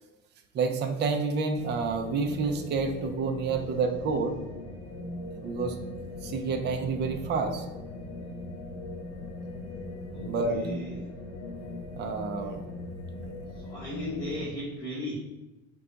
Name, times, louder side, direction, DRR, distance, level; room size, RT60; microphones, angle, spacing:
voice 1, 0.5-4.3 5.4-5.7 6.2-7.6 10.3-10.6 12.0-12.6, right 4 dB, 35° right, 5 dB, 0.4 m, -29 dB
sound 1, 1.6-14.5, left 1 dB, 45° left, 0.8 m, -40 dB
voice 2, 10.1-11.1 13.5-15.1, left 1 dB, 10° left, -9 dB, 1.1 m, -37 dB
4.7 x 2.3 x 3.9 m, 1.1 s
cardioid pair, 140°, 32 cm